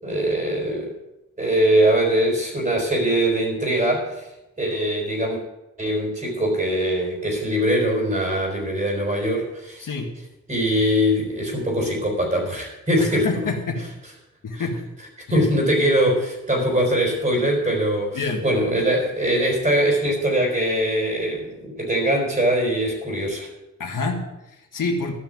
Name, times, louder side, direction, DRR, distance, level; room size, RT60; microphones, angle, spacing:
voice 1, 0.0-0.9 1.4-4.3 4.6-5.4 5.8-9.9 10.5-13.3 14.5-14.6 15.3-23.5, right 1 dB, 25° right, -1 dB, 4.4 m, -22 dB
voice 2, 13.0-13.8 14.4-14.8 15.4-15.5 16.6-16.7 18.1-18.4 23.8-25.1, left 3 dB, 85° left, 1 dB, 1.9 m, -27 dB
13.5 x 6.0 x 9.1 m, 0.95 s
wide cardioid pair, 120°, 31 cm